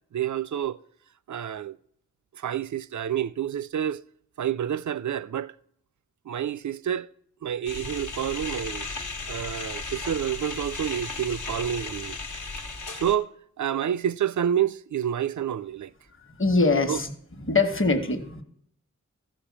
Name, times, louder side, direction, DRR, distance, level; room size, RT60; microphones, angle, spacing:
voice 1, 0.1-0.8 1.3-1.8 2.3-4.0 4.4-5.5 6.3-7.1 7.4-8.9 9.3-12.2 12.6-12.7 12.9-15.9 16.9-17.0, right 9 dB, 65° right, 0.5 m, -28 dB
sound 1, 7.7-13.2, left 3 dB, 75° left, 1.3 m, -35 dB
voice 2, 16.4-18.4, left 3 dB, 40° left, 1.2 m, -23 dB
14.5 x 5.2 x 7.2 m
wide cardioid pair, 75°, 31 cm